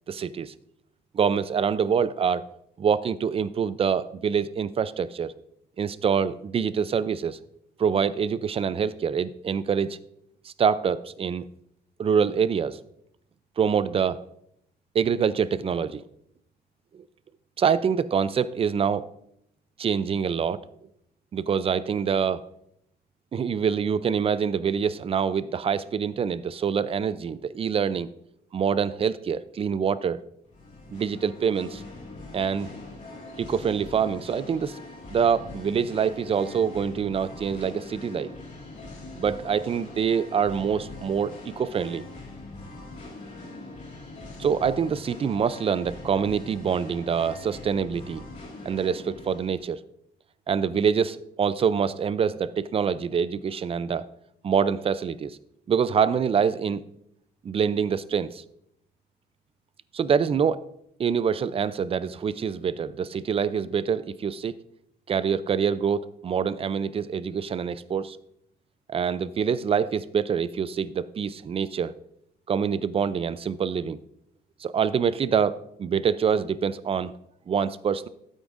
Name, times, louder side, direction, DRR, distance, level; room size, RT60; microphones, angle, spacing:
voice 1, 0.1-0.5 1.1-2.5 2.8-5.3 5.8-7.4 7.8-10.0 10.4-11.5 12.0-12.8 13.6-14.2 14.9-16.0 17.6-19.1 19.8-20.6 21.3-22.4 23.3-28.1 28.5-30.2 30.9-31.8 32.3-32.7 33.4-34.8 35.1-38.3 39.2-42.0 44.4-48.2 48.6-49.8 50.5-54.1 54.4-55.4 55.7-56.8 57.4-58.4 59.9-60.6 61.0-64.6 65.1-68.2 68.9-71.9 72.5-74.0 74.6-77.1 77.5-78.1, right 7 dB, 35° right, 16 dB, 0.4 m, -25 dB
Singing, 30.4-49.6, left 2 dB, 45° left, 2.6 m, -42 dB
12.5 x 8.9 x 2.6 m, 0.74 s
cardioid pair, 130°, 18 cm